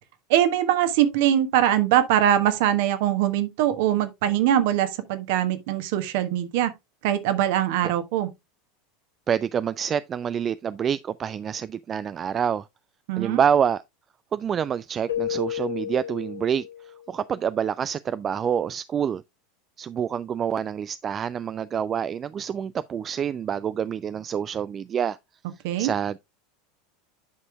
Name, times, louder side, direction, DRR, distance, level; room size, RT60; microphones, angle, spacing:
voice 1, 0.3-6.7 7.0-8.3 13.1-13.4 25.6-25.9, right 11 dB, 55° right, 1.3 m, -22 dB
voice 2, 9.3-12.7 13.2-13.8 14.3-16.7 17.1-19.2 19.8-25.2 25.8-26.2, right 8 dB, 30° right, 0.3 m, -27 dB
Keyboard (musical), 15.1-17.1, left 11 dB, 75° left, 1.4 m, -32 dB
10.0 x 6.1 x 2.3 m
figure-of-eight pair, 80°, 0 cm